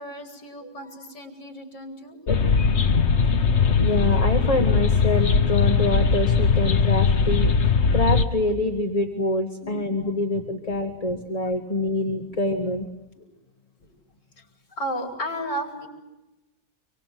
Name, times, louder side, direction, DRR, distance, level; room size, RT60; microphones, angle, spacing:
voice 1, 0.0-2.5 3.4-4.1 9.6-10.5 12.1-12.2 13.2-13.3 13.8-13.9 14.8-15.9, equal, 80° left, 2 dB, 5.0 m, -35 dB
sound 1, 2.3-8.3, left 5 dB, 45° left, 1.2 m, -20 dB
voice 2, 3.8-12.9, left 1 dB, 20° left, 4 dB, 1.5 m, -26 dB
26.0 x 24.0 x 7.6 m, 0.98 s
omnidirectional pair, 1.9 m